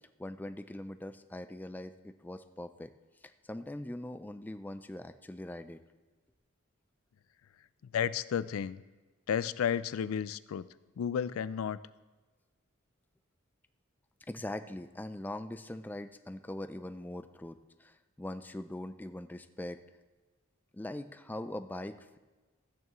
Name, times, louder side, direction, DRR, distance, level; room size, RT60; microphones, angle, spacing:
voice 1, 0.2-2.9 3.4-5.8 14.3-19.8 20.7-22.2, left 1 dB, 10° left, 10 dB, 0.3 m, -42 dB
voice 2, 7.9-8.8 9.3-10.7 11.0-11.8, left 8 dB, 85° left, 17 dB, 0.3 m, -32 dB
13.5 x 8.8 x 3.1 m, 1.3 s
head